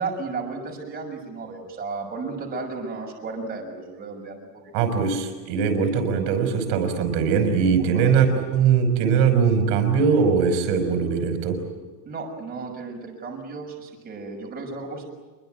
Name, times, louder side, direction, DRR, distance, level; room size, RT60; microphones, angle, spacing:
voice 1, 0.0-4.7 7.7-8.1 12.0-15.0, right 4 dB, 20° right, 0 dB, 6.4 m, -34 dB
voice 2, 4.7-11.6, right 6 dB, 60° right, 7 dB, 5.8 m, -21 dB
26.5 x 23.0 x 9.1 m, 1.3 s
cardioid pair, 170°, 45 cm